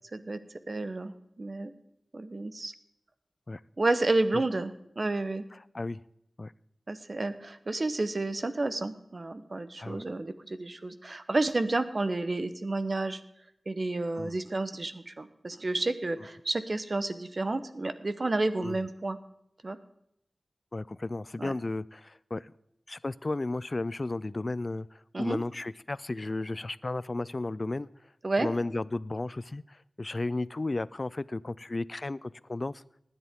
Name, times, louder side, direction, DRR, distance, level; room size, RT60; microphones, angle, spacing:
voice 1, 0.7-1.7 2.1-2.7 3.8-5.4 6.9-13.2 13.7-19.2 19.6-19.8 21.4-21.5 25.1-25.4 28.2-28.5, right 2 dB, 50° right, 11 dB, 1.0 m, -30 dB
voice 2, 20.7-22.5 22.9-24.9 25.2-27.9 28.4-32.8, left 2 dB, 45° left, 19 dB, 0.4 m, -34 dB
19.0 x 10.5 x 3.7 m, 0.75 s
wide cardioid pair, 55°, 0 cm